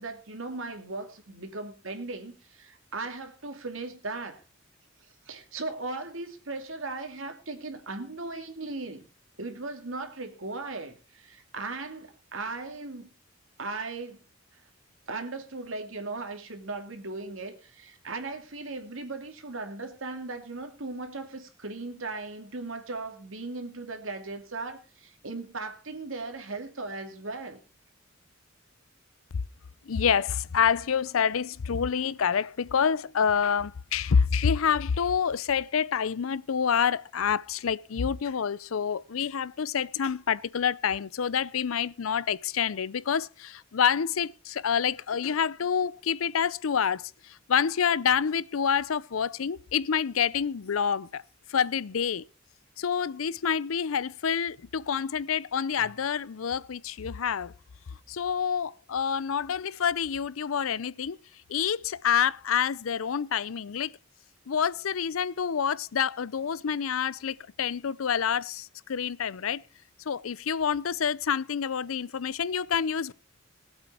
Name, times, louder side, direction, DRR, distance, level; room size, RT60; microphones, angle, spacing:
voice 1, 0.0-4.4 5.3-9.0 9.4-13.1 13.6-14.2 15.1-27.6, right 3 dB, 70° right, 2.6 m, -37 dB
voice 2, 29.9-51.2 51.5-52.2 52.8-57.5 58.1-61.2 61.5-63.9 64.5-69.6 70.1-73.1, left 7 dB, 90° left, 0.5 m, -27 dB
19.5 x 8.1 x 4.3 m
head